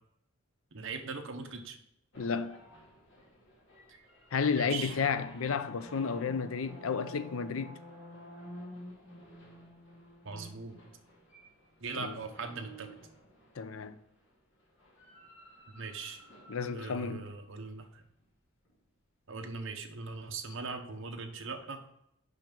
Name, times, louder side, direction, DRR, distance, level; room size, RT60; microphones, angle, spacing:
voice 1, 0.7-1.8 3.9-4.0 4.5-5.0 10.2-10.8 11.8-13.0 15.7-16.2 16.7-18.0 19.3-21.8, right 4 dB, 65° right, 1.1 m, -40 dB
sound 1, 2.1-13.9 14.8-17.4, equal, 60° left, 2.5 m, -51 dB
voice 2, 2.2-2.6 4.3-7.8 11.9-12.2 13.6-14.0 16.5-17.3, left 5 dB, 80° left, 0.6 m, -32 dB
6.0 x 5.8 x 5.2 m
head